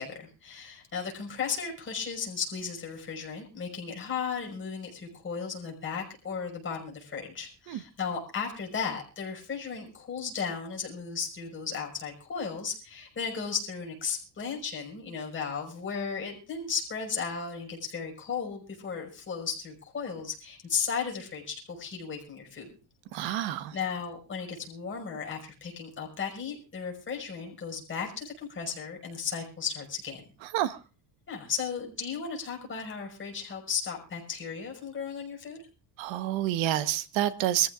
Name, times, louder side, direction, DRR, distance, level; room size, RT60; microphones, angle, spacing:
voice 1, 0.0-22.8 23.2-30.2 31.3-35.6, left 6 dB, 25° left, 5.6 m, -35 dB
voice 2, 23.1-23.7 30.5-30.8 36.0-37.7, right 12 dB, 80° right, 1.3 m, -28 dB
25.0 x 14.5 x 2.5 m
cardioid pair, 150°, 44 cm